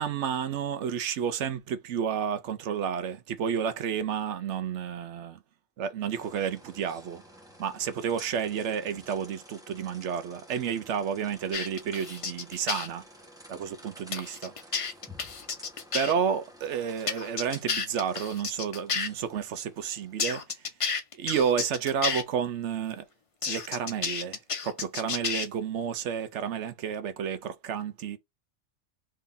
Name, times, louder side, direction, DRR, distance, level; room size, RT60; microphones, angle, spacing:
voice 1, 0.0-5.4 5.8-7.2 7.6-13.0 13.5-14.9 15.9-20.4 21.1-23.0 23.5-28.2, right 7 dB, 70° right, 0.9 m, -31 dB
sound 1, 6.1-20.5, equal, 5° right, 1.0 m, -52 dB
sound 2, 11.5-12.9 14.1-16.1 17.1-19.1 20.2-22.2 23.4-25.5, left 5 dB, 55° left, 0.3 m, -31 dB
3.7 x 2.8 x 3.6 m
omnidirectional pair, 1.4 m